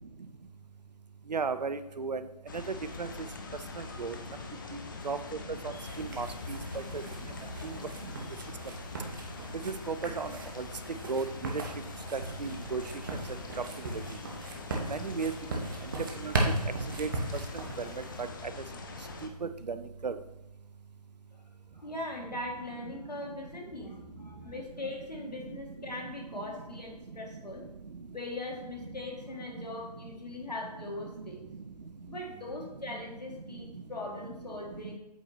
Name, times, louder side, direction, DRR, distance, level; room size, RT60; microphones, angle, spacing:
voice 1, 1.3-2.2 3.0-3.1 4.0-4.2 5.0-5.2 5.6-5.7 6.0-6.6 6.9-7.0 9.7-10.3 10.6-10.7 11.1-11.2 11.5-11.6 12.1-12.8 14.7-15.3 16.2-16.3 17.0-17.1 19.7-19.8 20.0-20.2, right 4 dB, 85° right, 12 dB, 0.5 m, -33 dB
sound 1, 2.5-19.3, left 4 dB, 30° left, 0.6 m, -43 dB
sound 2, 5.7-18.3, right 2 dB, 30° right, 0.9 m, -38 dB
voice 2, 21.7-27.6 28.1-31.4 32.1-35.0, left 2 dB, 80° left, 0 dB, 1.7 m, -40 dB
8.0 x 4.3 x 3.1 m, 0.96 s
figure-of-eight pair, 150°, 21 cm